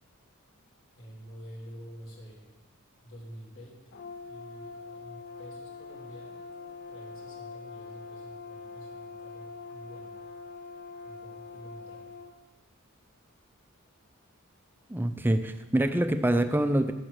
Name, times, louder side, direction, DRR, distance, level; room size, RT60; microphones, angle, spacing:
voice 1, 0.9-2.5 3.0-10.1 11.0-12.2, equal, 65° left, -5 dB, 2.9 m, -49 dB
Brass instrument, 3.9-12.3, left 4 dB, 50° left, 0.6 m, -44 dB
voice 2, 14.9-16.9, right 1 dB, 10° right, 8 dB, 0.4 m, -25 dB
9.9 x 4.5 x 6.5 m, 1.1 s
head